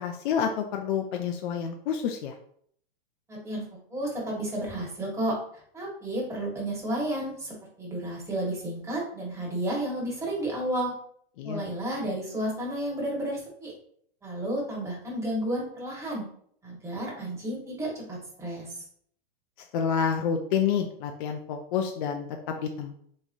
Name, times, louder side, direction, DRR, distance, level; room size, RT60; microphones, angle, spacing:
voice 1, 0.0-2.3 11.4-11.6 19.7-22.3 22.6-23.0, left 7 dB, 55° left, 3 dB, 0.5 m, -28 dB
voice 2, 3.3-3.6 3.9-10.9 11.4-13.7 14.2-16.2 16.6-18.8, right 1 dB, 10° right, -4 dB, 1.3 m, -32 dB
3.6 x 3.1 x 2.6 m, 0.63 s
hypercardioid pair, 130°, 30 cm